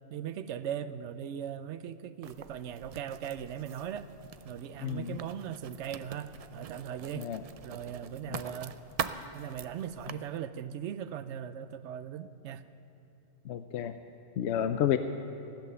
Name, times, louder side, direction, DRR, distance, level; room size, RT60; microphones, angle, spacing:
voice 1, 0.1-4.1 4.4-7.3 7.6-8.7 9.3-12.6, right 9 dB, 85° right, 13 dB, 0.9 m, -39 dB
Writing, 2.2-10.1, right 7 dB, 55° right, 0.4 m, -43 dB
voice 2, 4.8-5.2 7.2-7.4 8.3-8.4 13.5-13.9 14.4-15.0, left 10 dB, 75° left, 9 dB, 0.8 m, -30 dB
16.0 x 11.5 x 6.8 m, 3.0 s
omnidirectional pair, 1.2 m